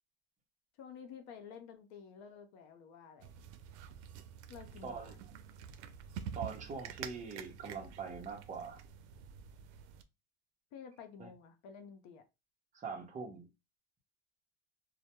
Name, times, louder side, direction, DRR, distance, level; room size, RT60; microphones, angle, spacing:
voice 1, 0.8-3.3 4.5-5.1 10.7-12.2, left 7 dB, 50° left, 0.6 m, -51 dB
sound 1, 3.2-10.0, right 8 dB, 85° right, 0.5 m, -48 dB
voice 2, 4.8-5.2 6.3-8.8 11.2-11.3 12.7-13.5, right 5 dB, 20° right, 0.7 m, -43 dB
2.2 x 2.1 x 2.8 m
supercardioid pair, 125°, 33 cm